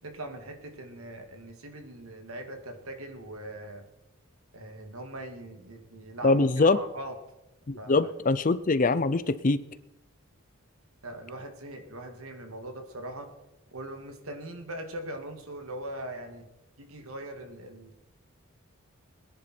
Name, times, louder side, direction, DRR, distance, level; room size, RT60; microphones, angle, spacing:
voice 1, 0.0-3.8 4.5-7.2 7.8-8.1 11.0-13.3 13.7-16.5 16.8-18.0, right 1 dB, 75° right, 5 dB, 2.3 m, -41 dB
voice 2, 6.2-6.8 7.7-9.6, left 3 dB, 35° left, 14 dB, 0.5 m, -23 dB
21.5 x 10.5 x 4.5 m, 0.94 s
head